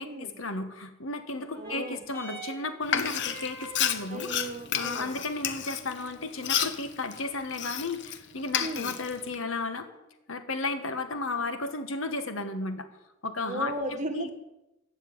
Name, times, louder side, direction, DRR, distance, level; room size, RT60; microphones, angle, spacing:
voice 1, 0.0-4.3 4.8-9.9 10.3-12.9 13.2-14.3, left 3 dB, 75° left, 9 dB, 1.4 m, -34 dB
sound 1, 1.3-10.3 11.1-11.2, right 2 dB, 15° left, 3.5 m, -49 dB
voice 2, 1.6-2.0 4.1-5.2 8.6-8.9 13.5-14.3, right 1 dB, 40° right, 7 dB, 1.4 m, -36 dB
Frying (food), 2.8-8.2 8.5-9.4, left 8 dB, 60° left, 1.0 m, -31 dB
15.0 x 5.8 x 9.1 m, 0.96 s
head